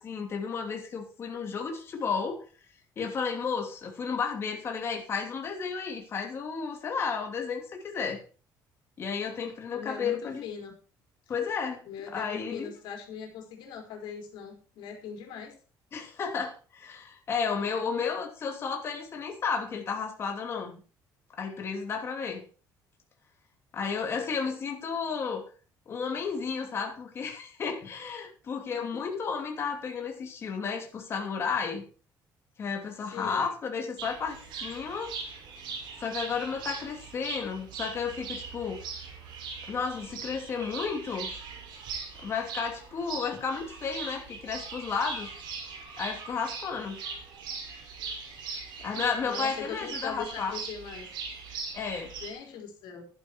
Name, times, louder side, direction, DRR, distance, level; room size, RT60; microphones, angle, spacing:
voice 1, 0.0-2.4 3.0-8.2 9.0-10.5 11.3-11.8 12.1-12.7 15.9-20.8 21.4-22.5 23.7-25.5 25.9-31.8 32.6-35.1 36.0-38.8 39.7-41.3 42.2-45.3 45.9-47.0 48.8-50.6 51.7-52.1, left 5 dB, 30° left, 3 dB, 2.8 m, -32 dB
voice 2, 9.7-10.8 11.8-15.5 28.7-29.2 33.0-33.5 49.2-51.1 52.2-53.0, left 7 dB, 75° left, 3 dB, 4.4 m, -41 dB
sound 1, 34.0-52.3, right 5 dB, 75° right, 5.5 m, -40 dB
12.0 x 11.0 x 4.6 m, 0.38 s
cardioid pair, 175°, 8 cm